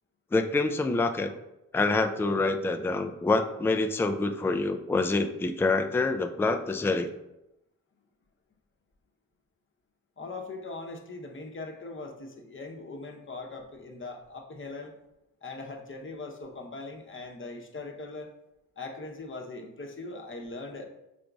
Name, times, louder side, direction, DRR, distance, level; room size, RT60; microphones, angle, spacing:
voice 1, 0.3-1.3 1.7-7.1, left 3 dB, 5° left, 7 dB, 0.3 m, -26 dB
voice 2, 10.2-14.9 15.4-18.3 18.8-20.9, left 3 dB, 35° left, 3 dB, 0.8 m, -40 dB
5.1 x 3.7 x 2.3 m, 0.90 s
supercardioid pair, 40°, 37 cm